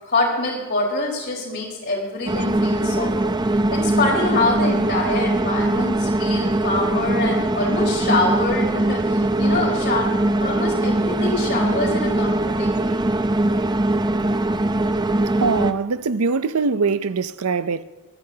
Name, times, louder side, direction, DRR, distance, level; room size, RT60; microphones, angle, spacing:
voice 1, 0.0-3.3 3.7-10.0 10.4-13.0, left 2 dB, 50° left, 4.5 m, -25 dB
sound 1, 2.3-15.7, right 1 dB, 20° right, 0.6 m, -21 dB
voice 2, 15.4-17.8, right 4 dB, 80° right, 0.6 m, -22 dB
25.0 x 10.5 x 2.9 m
head